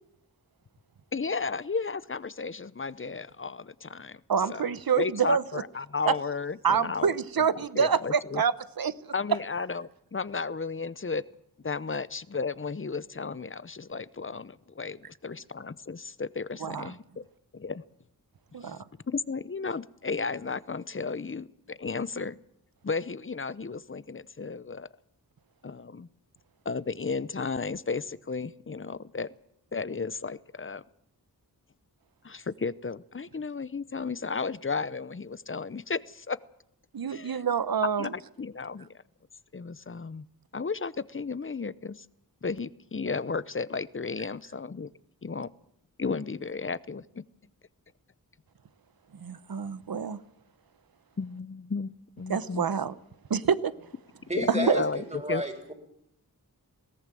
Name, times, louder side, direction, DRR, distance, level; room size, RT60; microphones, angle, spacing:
voice 1, 1.1-4.2 4.5-4.7 5.0-7.5 7.8-8.4 9.1-11.2 11.6-17.2 17.5-17.8 18.6-18.8 19.1-22.4 22.8-24.9 25.6-26.1 26.6-29.3 29.7-30.8 32.2-36.4 37.1-37.4 38.0-38.9 39.5-40.3 40.5-42.0 42.4-44.9 45.2-45.5 46.0-47.2 51.2-52.7 54.4-55.4, left 4 dB, 35° left, 18 dB, 0.8 m, -34 dB
voice 2, 4.3-5.6 6.1-6.2 6.6-8.9 16.6-16.9 18.5-18.8 36.9-38.1 49.2-50.2 52.3-52.9 53.3-53.7 54.5-54.8, right 6 dB, 80° right, 16 dB, 1.0 m, -27 dB
voice 3, 54.3-55.7, right 1 dB, 20° right, 5 dB, 4.0 m, -32 dB
21.5 x 17.5 x 7.6 m, 0.75 s
wide cardioid pair, 90°, 35 cm